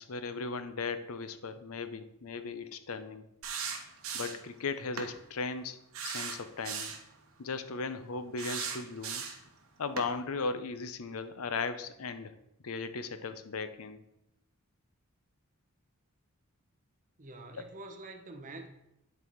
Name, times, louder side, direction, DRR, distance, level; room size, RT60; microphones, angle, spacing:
voice 1, 0.0-3.3 4.1-5.8 6.0-7.0 7.4-9.2 9.8-12.3 12.6-14.0 17.6-17.7, left 4 dB, 75° left, 11 dB, 0.6 m, -37 dB
sound 1, 3.4-4.5 5.0-5.1 5.9-7.0 8.4-9.5 10.0-10.1, right 6 dB, 65° right, 1.0 m, -37 dB
voice 2, 17.2-18.7, right 2 dB, 35° right, 4 dB, 0.8 m, -46 dB
9.7 x 4.2 x 4.6 m, 0.85 s
head